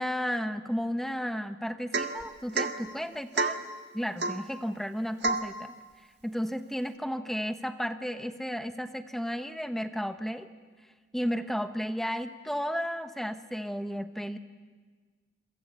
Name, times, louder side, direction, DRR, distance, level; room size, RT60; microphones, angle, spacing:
voice 1, 0.0-3.6 3.9-5.7 6.2-10.5 11.1-14.4, equal, ahead, 9 dB, 1.0 m, -33 dB
Domestic sounds home sounds / Chink clink / Drip, 1.9-2.2 2.5-2.8 3.3-3.6 4.2-4.5 5.2-5.5, right 3 dB, 70° right, 1.7 m, -29 dB
28.5 x 23.5 x 8.2 m, 1.4 s
head